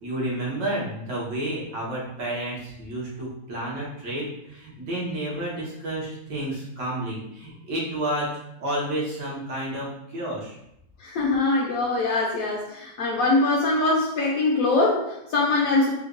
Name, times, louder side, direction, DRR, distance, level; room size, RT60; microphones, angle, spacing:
voice 1, 0.0-8.3 8.6-9.9 10.1-10.6, right 1 dB, 85° right, -5 dB, 1.8 m, -30 dB
voice 2, 11.0-15.9, left 2 dB, 70° left, -2 dB, 0.8 m, -23 dB
4.4 x 2.2 x 2.4 m, 0.79 s
omnidirectional pair, 1.9 m